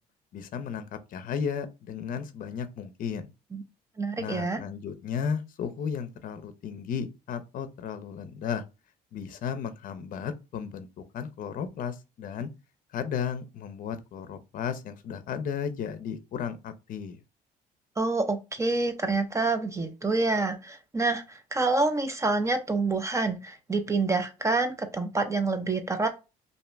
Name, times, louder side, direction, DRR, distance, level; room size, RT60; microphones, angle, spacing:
voice 1, 0.3-3.3 4.2-8.6 9.1-12.5 12.9-17.2, left 7 dB, 55° left, 0.6 m, -34 dB
voice 2, 4.0-4.6 18.0-26.1, right 3 dB, 15° right, 0.5 m, -27 dB
2.6 x 2.4 x 3.1 m
cardioid pair, 110°, 17 cm